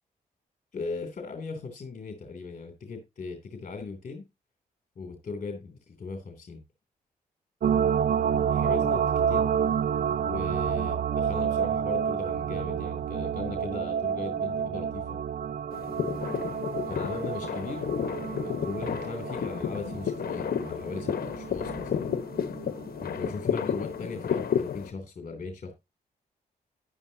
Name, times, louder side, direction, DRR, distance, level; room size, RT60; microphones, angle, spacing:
voice 1, 0.7-4.2 5.0-6.6 8.5-9.5 10.2-15.2 16.7-22.0 23.0-25.7, left 4 dB, 50° left, 2.9 m, -38 dB
sound 1, 7.6-23.3 23.7-23.8, right 8 dB, 65° right, 0.6 m, -29 dB
sound 2, 15.7-24.9, left 8 dB, 65° left, 1.2 m, -32 dB
10.5 x 9.7 x 2.8 m
cardioid pair, 60°, 16 cm